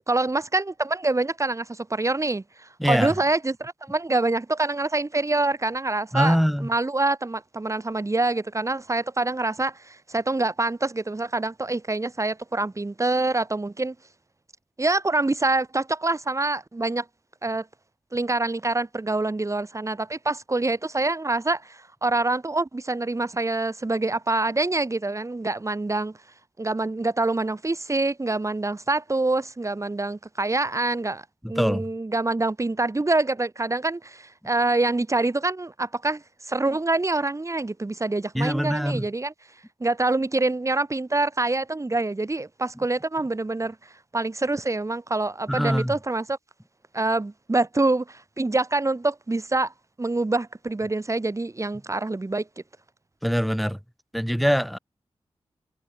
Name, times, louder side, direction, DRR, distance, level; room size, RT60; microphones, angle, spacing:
voice 1, 0.1-13.9 14.8-17.1 17.4-17.7 18.1-26.2 26.6-39.3 39.8-46.4 46.9-49.7 50.0-52.5, right 2 dB, 30° right, 2.8 m, -26 dB
voice 2, 2.8-3.2 6.1-6.7 31.4-31.9 38.3-39.1 45.5-46.0 53.2-53.8 54.1-54.8, equal, ahead, 7.0 m, -23 dB
cardioid pair, 70°, 11 cm